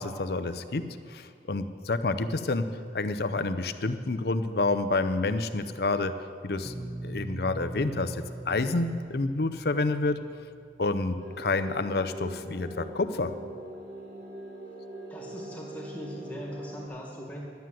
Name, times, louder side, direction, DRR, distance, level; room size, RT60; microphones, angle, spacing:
voice 1, 0.0-2.7 2.9-6.1 6.4-6.7 7.0-10.2 10.8-13.3, left 3 dB, 60° left, 10 dB, 0.6 m, -29 dB
sound 1, 6.7-11.6, right 2 dB, 10° right, 0.4 m, -42 dB
sound 2, 11.2-16.9, right 1 dB, 50° right, 1.8 m, -42 dB
voice 2, 15.1-17.4, equal, 10° left, -2 dB, 1.9 m, -40 dB
11.5 x 9.5 x 7.6 m, 2.5 s
head